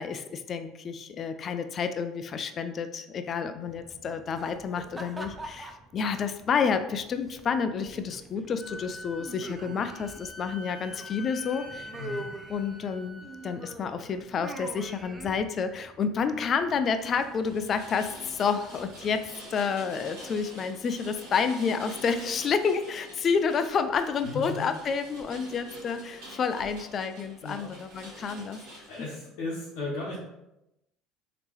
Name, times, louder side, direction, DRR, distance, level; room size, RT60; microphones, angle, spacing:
voice 1, 0.0-11.9 12.5-28.6, left 6 dB, 45° left, 9 dB, 0.3 m, -29 dB
sound 1, 3.7-19.3, right 1 dB, 15° right, 0.5 m, -45 dB
Wind instrument woodwind instrument, 8.6-13.7, left 2 dB, 25° left, 0.8 m, -45 dB
voice 2, 11.9-12.3 24.2-24.7 27.4-27.7 28.9-30.2, left 3 dB, 75° left, -7 dB, 0.8 m, -35 dB
Rain, 16.8-29.2, right 1 dB, 70° right, 1.2 m, -47 dB
3.4 x 2.8 x 3.1 m, 0.90 s
hypercardioid pair, 75°, 0 cm